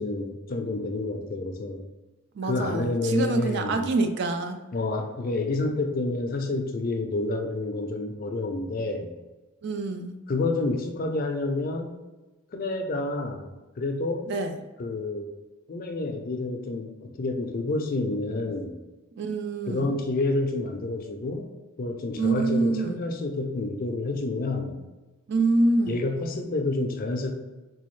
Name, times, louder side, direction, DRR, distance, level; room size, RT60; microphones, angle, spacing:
voice 1, 0.0-1.8 2.4-3.9 4.7-9.1 10.3-11.9 12.5-14.3 14.8-15.3 15.7-18.8 19.7-21.5 21.8-24.8 25.9-27.3, left 2 dB, 45° left, 4 dB, 0.4 m, -29 dB
voice 2, 2.4-4.6 9.6-10.2 14.3-14.6 19.2-19.9 22.2-23.0 25.3-26.0, right 2 dB, 55° right, 6 dB, 0.3 m, -26 dB
4.1 x 2.3 x 3.1 m, 1.1 s
head